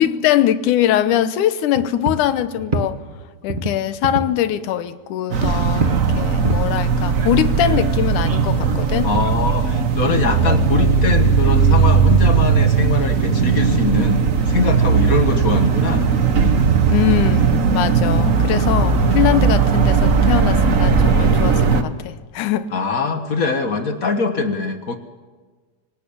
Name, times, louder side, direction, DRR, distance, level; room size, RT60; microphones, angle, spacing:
voice 1, 0.0-3.0 3.4-9.1 16.9-22.7, left 11 dB, 90° left, 2.4 m, -21 dB
sound 1, 1.1-1.2 1.7-3.2 3.5-4.3 5.4-7.3 7.6-9.8, right 3 dB, 35° right, 0.7 m, -27 dB
sound 2, 5.3-21.8, right 5 dB, 85° right, 0.7 m, -17 dB
voice 2, 9.0-16.1 22.7-25.0, left 4 dB, 45° left, 1.1 m, -22 dB
25.5 x 18.0 x 7.2 m
omnidirectional pair, 3.5 m